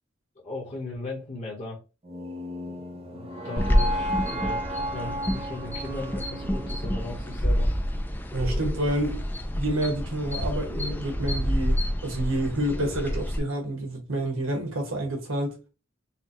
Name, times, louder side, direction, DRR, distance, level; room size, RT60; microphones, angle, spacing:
voice 1, 0.4-1.8 2.7-2.8 3.1-7.7, left 2 dB, 40° left, 1.1 m, -37 dB
sound 1, 2.0-8.1, equal, 30° right, 0.7 m, -34 dB
sound 2, 3.6-13.4, equal, 10° left, 0.4 m, -28 dB
voice 2, 8.3-9.2 9.5-15.5, right 1 dB, 80° right, 1.6 m, -28 dB
5.8 x 2.3 x 3.0 m
head